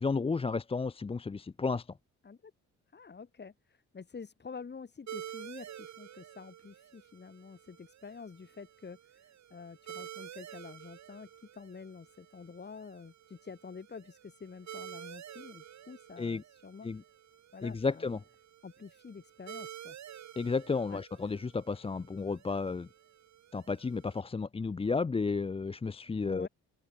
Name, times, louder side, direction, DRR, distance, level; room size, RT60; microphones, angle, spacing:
voice 1, 0.0-1.9 16.2-16.4 16.8-17.0 17.6-18.2 20.4-22.9 23.5-26.5, left 4 dB, 20° left, 0.6 m, -32 dB
voice 2, 2.9-3.5 3.9-9.0 9.5-16.9 17.5-18.1 18.6-20.0 20.8-21.0 26.2-26.5, left 5 dB, 35° left, 4.8 m, -48 dB
sound 1, 5.1-24.2, right 10 dB, 65° right, 4.7 m, -50 dB
open air
cardioid pair, 90°, 30 cm